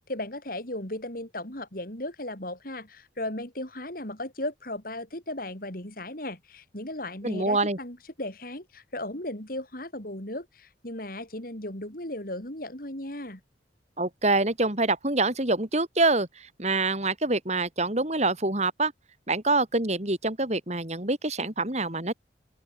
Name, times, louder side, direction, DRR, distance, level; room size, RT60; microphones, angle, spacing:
voice 1, 0.0-13.4, left 1 dB, 50° left, 5.1 m, -36 dB
voice 2, 7.2-7.8 14.0-18.9 19.3-22.1, right 2 dB, 35° right, 3.4 m, -26 dB
open air
head